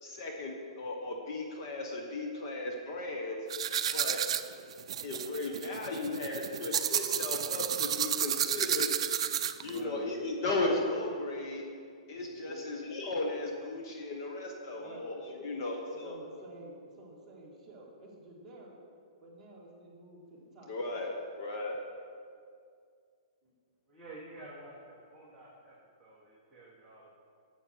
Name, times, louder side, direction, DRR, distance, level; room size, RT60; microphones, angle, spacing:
voice 1, 0.0-3.4 3.9-4.2 5.0-8.9 9.6-11.6 12.1-16.2 20.7-21.1 21.4-21.8, left 2 dB, 35° left, 1 dB, 1.0 m, -36 dB
sound 1, 3.5-9.8, right 9 dB, 55° right, 0.4 m, -32 dB
voice 2, 9.6-10.0 12.4-12.6 14.7-15.1 15.5-18.8 19.2-21.1 23.4-23.5, right 1 dB, 10° right, -6 dB, 2.0 m, -50 dB
voice 3, 23.9-25.7 26.0-27.1, right 2 dB, 5° left, -10 dB, 1.3 m, -50 dB
11.5 x 7.7 x 4.5 m, 2.2 s
hypercardioid pair, 170°, 4 cm